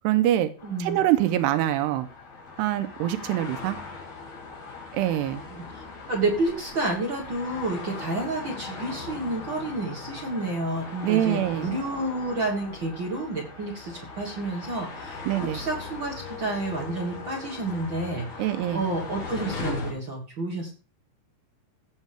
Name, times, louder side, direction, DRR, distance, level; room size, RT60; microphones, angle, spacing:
voice 1, 0.0-0.5 0.8-2.1 2.6-3.8 4.9-5.4 11.0-11.7 15.3-15.6 18.4-18.8, right 13 dB, 90° right, 9 dB, 2.8 m, -24 dB
sound 1, 0.6-19.9, left 4 dB, 45° left, 3.2 m, -39 dB
voice 2, 0.6-1.0 5.5-20.7, right 2 dB, 50° right, -1 dB, 1.4 m, -30 dB
16.5 x 6.5 x 3.4 m, 0.36 s
omnidirectional pair, 4.8 m